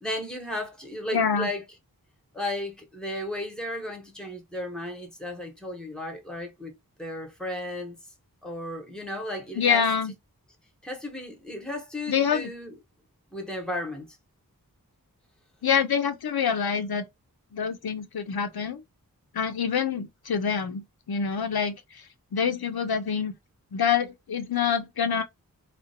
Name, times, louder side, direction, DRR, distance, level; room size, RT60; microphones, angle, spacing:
voice 1, 0.0-1.6 2.3-8.0 8.4-9.8 10.8-12.7 13.3-14.2, left 1 dB, ahead, 1.0 m, -34 dB
voice 2, 1.1-1.5 9.6-10.1 12.1-12.5 15.6-17.0 17.5-18.8 19.3-21.7 22.3-23.3 23.7-25.2, left 7 dB, 85° left, 0.5 m, -26 dB
2.5 x 2.0 x 2.6 m
wide cardioid pair, 40°, 36 cm